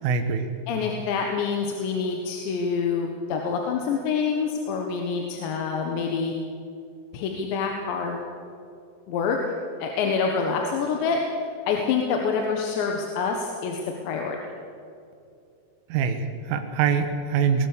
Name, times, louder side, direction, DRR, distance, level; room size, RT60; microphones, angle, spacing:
voice 1, 0.0-0.5 15.9-17.7, right 6 dB, 80° right, 6 dB, 3.8 m, -24 dB
voice 2, 0.7-6.3 7.1-8.2 9.1-9.4 9.8-13.8 14.0-14.4, left 5 dB, 70° left, 2 dB, 3.4 m, -26 dB
20.0 x 19.5 x 6.7 m, 2.5 s
omnidirectional pair, 5.7 m